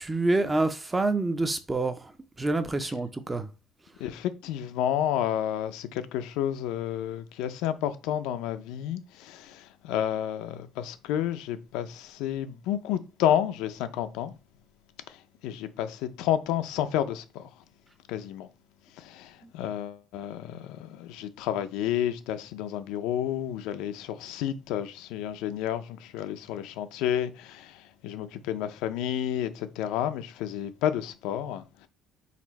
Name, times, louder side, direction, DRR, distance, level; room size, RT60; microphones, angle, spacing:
voice 1, 0.0-2.0 2.4-3.5, right 2 dB, 10° right, 0.4 m, -27 dB
voice 2, 4.0-14.3 15.1-17.5 18.1-18.5 19.0-31.9, left 10 dB, 85° left, 0.5 m, -31 dB
4.1 x 2.6 x 4.1 m
cardioid pair, 175°, 0 cm